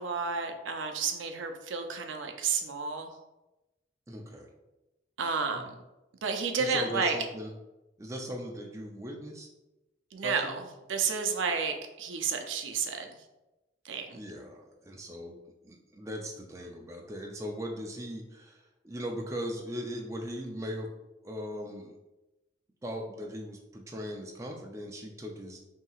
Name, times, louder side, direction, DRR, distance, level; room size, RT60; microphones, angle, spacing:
voice 1, 0.0-3.1 5.2-5.6 6.2-7.2 10.1-10.6 10.9-13.1 13.8-14.2, right 5 dB, 85° right, 5 dB, 0.5 m, -31 dB
voice 2, 4.1-4.5 5.5-5.6 6.6-7.5 8.0-9.5 10.2-10.6 14.1-15.4 15.6-20.9 21.2-21.9 22.8-25.6, equal, 15° right, 0 dB, 0.4 m, -39 dB
5.6 x 2.8 x 2.4 m, 1.0 s
head